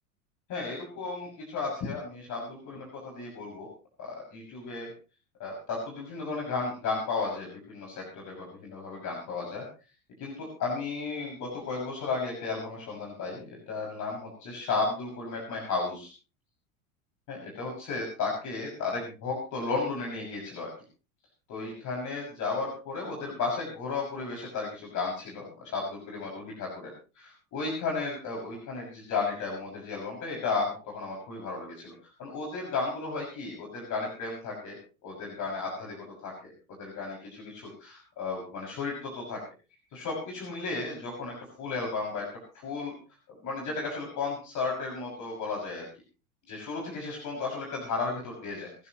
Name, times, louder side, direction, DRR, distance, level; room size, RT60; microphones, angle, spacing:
voice 1, 0.5-3.7 4.0-4.9 5.4-9.7 10.2-16.1 17.3-20.7 21.5-31.9 32.2-36.5 36.8-39.4 39.9-42.2 42.5-42.9 43.4-45.9 46.5-48.9, left 4 dB, 45° left, -1 dB, 6.7 m, -34 dB
24.5 x 13.0 x 3.1 m, 0.34 s
hypercardioid pair, 100°, 42 cm